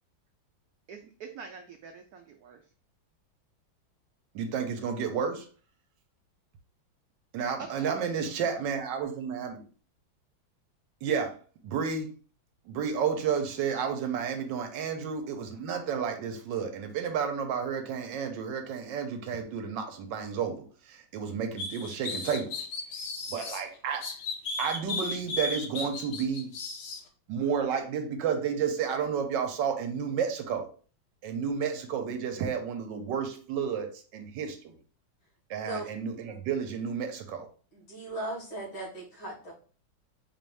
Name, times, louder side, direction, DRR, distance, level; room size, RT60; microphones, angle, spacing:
voice 1, 0.9-2.6 7.6-8.1, right 5 dB, 85° right, 0.8 m, -44 dB
voice 2, 4.3-5.5 7.3-9.6 11.0-12.1 12.7-22.7 23.3-24.2 24.6-26.5 27.3-30.7 31.2-34.8 35.5-37.5, right 7 dB, 70° right, 1.3 m, -31 dB
sound 1, 21.6-23.6 24.0-27.0, left 3 dB, 65° left, 1.3 m, -35 dB
voice 3, 37.7-39.5, right 2 dB, 80° left, 2.8 m, -37 dB
4.9 x 2.6 x 3.2 m
omnidirectional pair, 2.2 m